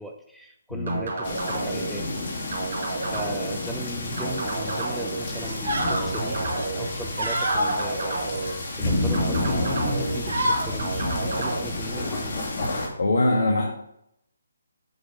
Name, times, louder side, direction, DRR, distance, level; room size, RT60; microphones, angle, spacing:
voice 1, 0.0-2.2 3.1-8.3 8.8-12.4, equal, ahead, 0 dB, 0.5 m, -38 dB
voice 2, 0.7-1.0 13.0-13.6, left 2 dB, 75° left, -1 dB, 1.4 m, -22 dB
sound 1, 0.9-1.9 2.5-3.6 4.2-5.2 5.8-6.9 7.5-8.5 9.1-10.2 10.8-11.6, right 3 dB, 60° right, 2.0 m, -30 dB
sound 2, 1.2-12.9, left 1 dB, 55° left, 2.6 m, -30 dB
sound 3, 4.6-4.9 5.3-6.1 6.5-7.8 8.3-9.2 9.6-9.8 10.1-10.7, equal, 80° right, 2.2 m, -28 dB
7.8 x 4.1 x 5.2 m, 0.76 s
figure-of-eight pair, 150°, 0 cm